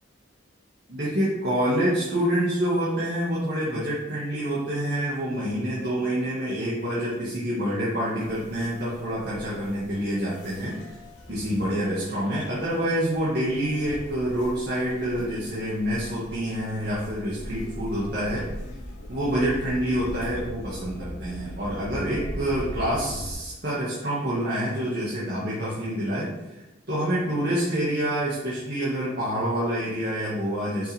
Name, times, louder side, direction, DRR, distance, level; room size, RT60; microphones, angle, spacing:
voice 1, 0.9-10.9 11.3-18.5 19.1-26.3 26.9-30.9, equal, 50° right, -7 dB, 2.0 m, -27 dB
sound 1, 8.2-23.3, equal, 70° left, 2.4 m, -40 dB
9.7 x 6.1 x 3.6 m, 0.99 s
head